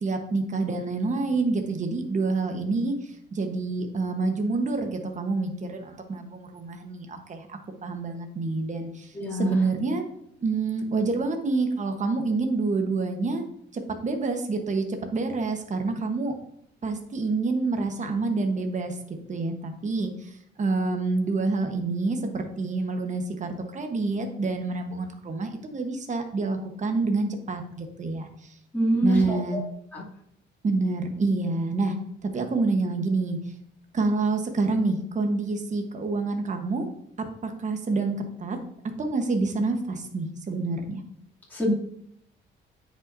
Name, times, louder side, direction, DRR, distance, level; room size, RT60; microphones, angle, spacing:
voice 1, 0.0-10.0 10.4-13.4 13.7-16.3 16.8-19.0 19.3-28.5 29.0-29.6 30.6-32.0 32.2-33.4 33.9-36.9 37.2-38.6 39.0-41.0, right 3 dB, 40° right, 5 dB, 1.2 m, -27 dB
voice 2, 9.1-9.6 28.7-29.6 29.9-30.0 41.5-41.7, equal, 10° left, -7 dB, 2.7 m, -25 dB
9.2 x 5.5 x 2.7 m, 0.69 s
cardioid pair, 90°, 20 cm